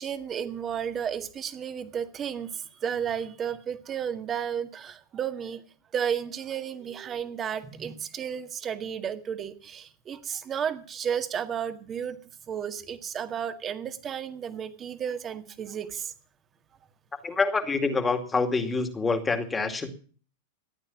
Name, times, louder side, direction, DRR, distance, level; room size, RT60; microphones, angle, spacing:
voice 1, 0.0-5.6 5.9-12.2 12.5-16.1, right 8 dB, 25° right, 9 dB, 1.8 m, -33 dB
voice 2, 17.2-19.9, left 4 dB, 15° left, 7 dB, 2.3 m, -26 dB
15.0 x 9.0 x 7.2 m, 0.41 s
hypercardioid pair, 115°, 0 cm